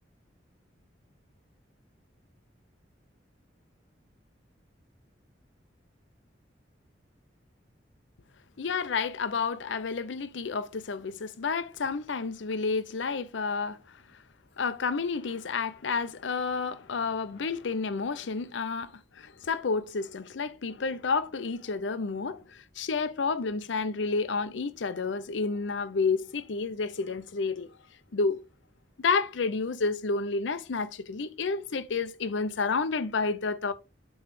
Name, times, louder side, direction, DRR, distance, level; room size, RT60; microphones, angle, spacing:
voice 1, 8.6-13.8 14.6-18.9 19.2-27.7 28.1-28.4 29.0-33.7, left 4 dB, 70° left, 0.6 m, -30 dB
8.2 x 3.2 x 4.6 m
head